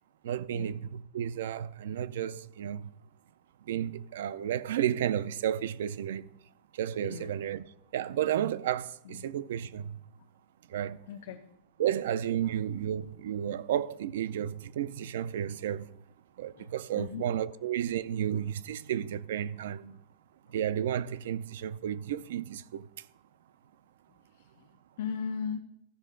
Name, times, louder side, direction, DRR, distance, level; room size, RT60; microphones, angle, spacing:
voice 1, 0.2-2.9 3.7-6.3 6.7-7.6 7.9-10.0 10.7-11.0 11.8-15.9 16.4-20.0 20.5-22.9, right 10 dB, 65° right, 0.4 m, -32 dB
voice 2, 7.0-7.4 9.0-9.3 10.7-11.4 12.4-12.6 16.6-17.3 25.0-25.6, left 6 dB, 60° left, 0.7 m, -38 dB
14.5 x 5.4 x 3.8 m
supercardioid pair, 180°, 0 cm